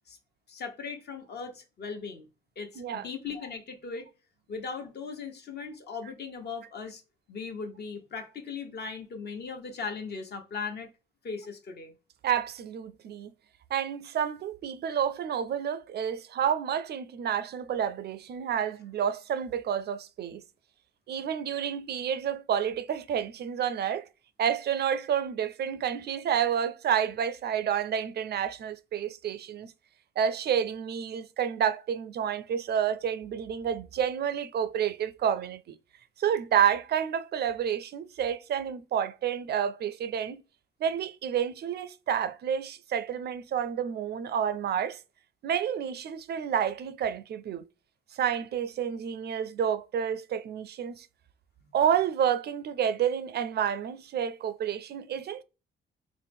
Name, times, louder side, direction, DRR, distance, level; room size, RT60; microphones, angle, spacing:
voice 1, 0.5-2.3 2.6-4.1 4.5-7.0 7.3-10.9 11.2-11.9, left 5 dB, 55° left, 1.1 m, -38 dB
voice 2, 2.8-3.1 12.2-13.3 13.7-20.4 21.1-24.0 24.4-29.7 30.2-35.8 36.2-40.4 40.8-45.0 45.4-47.7 48.1-51.1 51.7-55.4, right 8 dB, 55° right, 0.4 m, -29 dB
3.8 x 2.1 x 3.5 m
cardioid pair, 90°, 20 cm